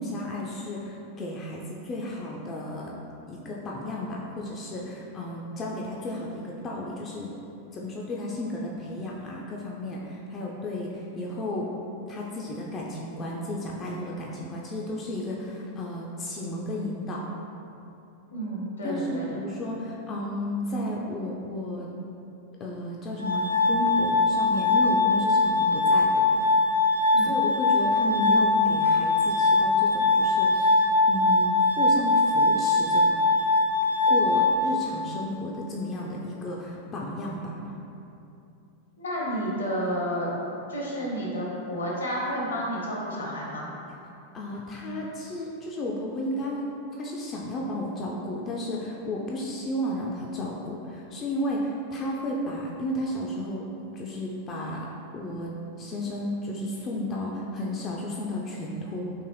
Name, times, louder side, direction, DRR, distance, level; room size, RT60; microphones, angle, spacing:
voice 1, 0.0-2.9 3.3-7.3 7.7-11.7 12.1-17.2 18.8-21.9 22.6-26.3 27.2-33.0 34.1-37.6 44.3-46.6 47.0-53.7 53.9-54.9 55.1-55.5 55.8-59.1, left 1 dB, 30° left, -3 dB, 0.3 m, -33 dB
voice 2, 18.3-19.4 27.1-27.3 39.0-40.3 40.7-43.7, equal, 75° left, -4 dB, 0.8 m, -31 dB
Glass, 23.2-35.2, left 3 dB, 85° right, 0.3 m, -22 dB
3.7 x 2.5 x 3.2 m, 2.7 s
figure-of-eight pair, 90°, 0 cm